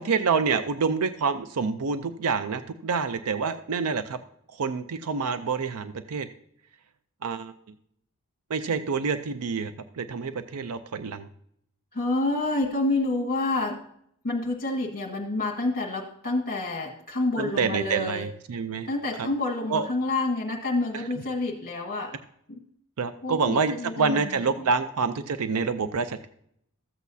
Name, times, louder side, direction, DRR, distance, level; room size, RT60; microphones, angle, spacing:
voice 1, 0.0-4.2 4.5-6.3 7.2-7.5 8.5-11.3 17.4-18.9 19.2-19.3 19.7-19.9 20.9-21.0 23.0-26.3, right 5 dB, 75° right, 11 dB, 0.5 m, -27 dB
voice 2, 11.9-13.8 14.2-18.3 18.9-22.1 22.5-22.6 23.2-24.7, left 2 dB, 40° left, -2 dB, 1.4 m, -28 dB
14.0 x 8.3 x 2.7 m, 0.70 s
head